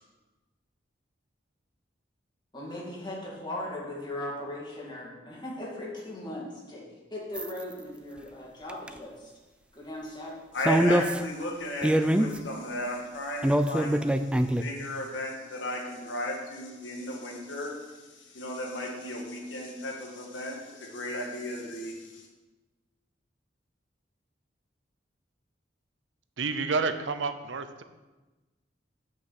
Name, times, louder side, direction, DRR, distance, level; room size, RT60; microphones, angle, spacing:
voice 1, 2.5-6.8 7.1-9.3 9.7-10.4, left 1 dB, 25° left, -5 dB, 2.3 m, -38 dB
sound 1, 7.3-7.6 8.7-8.9 10.6-11.2 11.8-12.4 13.4-14.6, right 1 dB, 5° right, 0.3 m, -23 dB
voice 2, 10.5-14.0 14.6-22.2, left 1 dB, 85° left, 0 dB, 1.6 m, -35 dB
voice 3, 26.4-27.8, right 4 dB, 85° right, 10 dB, 0.6 m, -29 dB
6.5 x 5.5 x 7.1 m, 1.2 s
head